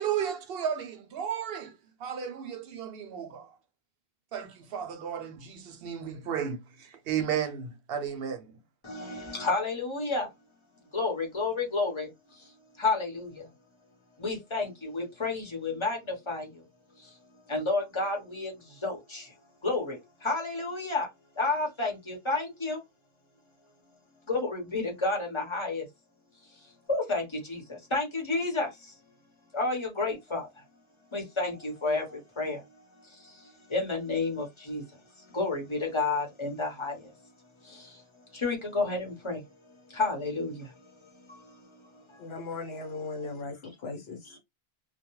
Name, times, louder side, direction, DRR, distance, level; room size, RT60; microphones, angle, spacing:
voice 1, 0.0-3.5 4.3-8.5, right 8 dB, 70° right, 0.7 m, -34 dB
voice 2, 8.8-10.3 10.9-12.5 12.8-13.5 14.2-16.6 17.0-17.2 17.5-19.4 19.6-21.1 21.3-22.8 24.3-25.9 26.5-29.0 29.5-30.6 31.1-37.1 37.6-38.0 38.3-42.3 43.3-43.4, left 3 dB, 30° left, 0.9 m, -31 dB
voice 3, 42.2-44.4, left 3 dB, 70° left, 1.1 m, -38 dB
2.3 x 2.1 x 3.0 m
omnidirectional pair, 1.1 m